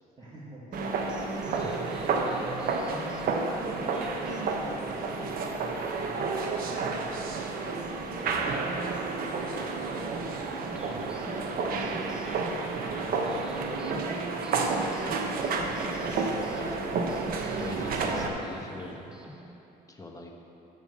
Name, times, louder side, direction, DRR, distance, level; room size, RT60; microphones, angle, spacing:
voice 1, 0.2-0.7 1.3-2.3 2.9-7.8 8.2-11.9 12.7-13.4, right 1 dB, 25° right, -9 dB, 2.0 m, -49 dB
sound 1, 0.7-19.6, equal, 5° right, 0.9 m, -46 dB
sound 2, 0.7-18.3, right 4 dB, 60° right, 1.0 m, -31 dB
voice 2, 1.4-1.8 16.0-17.0 17.5-19.0 19.9-20.3, left 2 dB, 20° left, 1 dB, 1.3 m, -42 dB
13.0 x 4.5 x 7.1 m, 3.0 s
cardioid pair, 110°, 17 cm